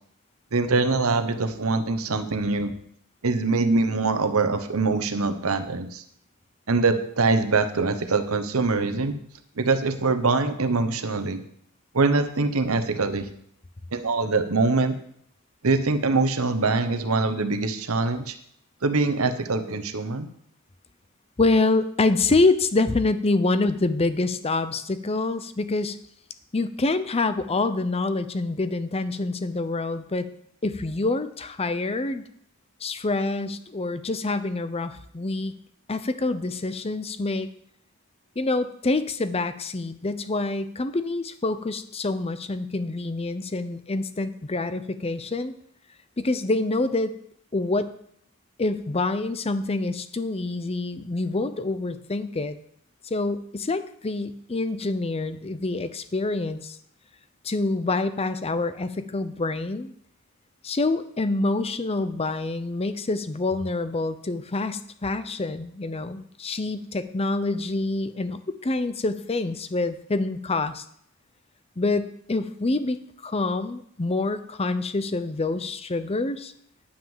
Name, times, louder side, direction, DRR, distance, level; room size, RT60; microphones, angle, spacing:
voice 1, 0.5-2.7 3.2-6.0 6.7-9.2 9.6-11.4 11.9-13.2 13.9-14.9 15.6-18.3 18.8-20.3, right 3 dB, 70° right, 9 dB, 1.0 m, -23 dB
voice 2, 21.4-26.0 26.5-30.3 30.6-32.2 32.8-35.5 35.9-37.5 38.4-45.5 46.2-47.2 47.5-47.9 48.6-52.6 53.0-56.8 57.4-59.9 60.6-70.8 71.8-76.5, left 2 dB, 25° left, 12 dB, 0.6 m, -26 dB
9.9 x 6.2 x 7.3 m, 0.68 s
head